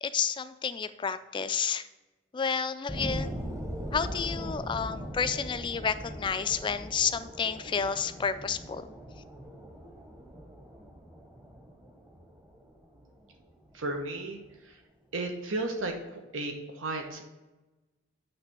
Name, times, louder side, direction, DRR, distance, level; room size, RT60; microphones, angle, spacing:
voice 1, 0.0-1.9 2.3-3.3 3.9-8.9, left 6 dB, 25° left, 12 dB, 0.3 m, -30 dB
sound 1, 2.9-13.9 14.4-14.5, equal, 15° right, 0.9 m, -40 dB
voice 2, 13.7-14.8 15.1-17.2, right 2 dB, 85° right, 3 dB, 1.0 m, -34 dB
8.9 x 3.3 x 6.1 m, 1.1 s
head